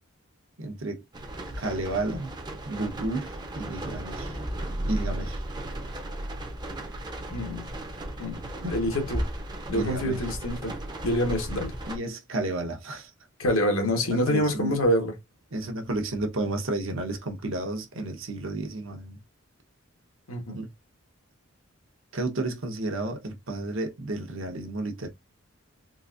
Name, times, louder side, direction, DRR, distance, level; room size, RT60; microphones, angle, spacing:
voice 1, 0.6-1.0 1.5-2.3 2.7-4.4 4.8-5.4 8.6-8.7 9.7-10.2 11.8-13.1 14.0-14.8 15.5-19.2 20.5-20.7 22.1-25.1, right 2 dB, 70° right, 0.9 m, -32 dB
sound 1, 1.1-12.0, right 1 dB, 20° right, 0.6 m, -35 dB
voice 2, 7.3-7.7 8.2-8.4 8.7-9.2 9.7-10.8 11.0-11.8 13.4-15.1 20.3-20.6, equal, 80° left, 1.2 m, -26 dB
3.9 x 2.5 x 2.4 m
head